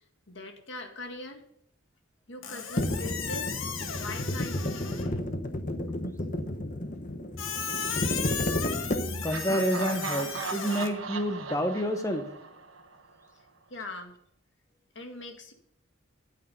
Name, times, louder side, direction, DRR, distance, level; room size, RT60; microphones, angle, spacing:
voice 1, 0.3-1.4 2.3-3.5 3.9-5.0 13.7-14.2 15.0-15.5, left 2 dB, 60° left, 5 dB, 1.9 m, -41 dB
Squeak, 2.4-5.2 7.4-10.9, left 6 dB, 85° left, 1.4 m, -35 dB
sound 1, 2.8-9.5, left 1 dB, 40° left, 1.0 m, -32 dB
voice 2, 9.2-12.3, equal, 15° left, 7 dB, 1.1 m, -29 dB
Laughter, 9.2-13.1, right 4 dB, 80° right, 1.3 m, -37 dB
13.0 x 8.6 x 5.3 m, 0.71 s
head